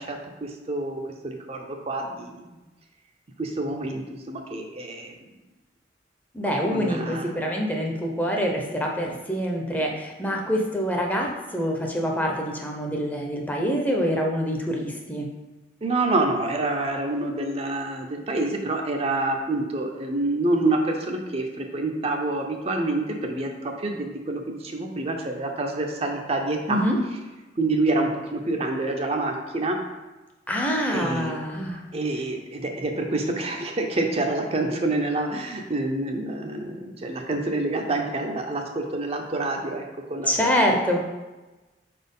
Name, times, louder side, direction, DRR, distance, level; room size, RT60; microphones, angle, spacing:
voice 1, 0.0-2.4 3.4-4.0 4.3-5.1 6.7-7.3 15.8-26.8 27.6-29.8 30.9-31.4 31.9-40.8, right 2 dB, 35° right, 2 dB, 0.6 m, -27 dB
voice 2, 6.3-15.3 26.7-27.0 30.5-31.8 40.3-41.0, equal, 10° left, 0 dB, 0.7 m, -25 dB
4.5 x 4.2 x 5.4 m, 1.1 s
head